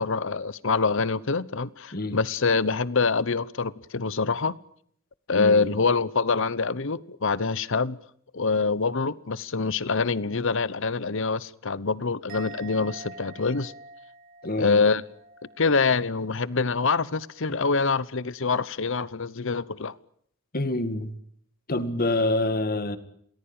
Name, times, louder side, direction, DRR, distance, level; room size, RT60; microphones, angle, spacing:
voice 1, 0.0-4.6 5.3-8.0 8.3-13.7 14.6-15.0 15.6-19.9, left 4 dB, 65° left, 1.0 m, -25 dB
voice 2, 5.3-5.7 14.4-14.9 20.5-21.1 21.7-23.0, left 2 dB, 45° left, 2.1 m, -26 dB
Musical instrument, 12.3-15.7 15.9-16.4, right 3 dB, 45° right, 7.5 m, -45 dB
28.5 x 19.5 x 8.9 m
head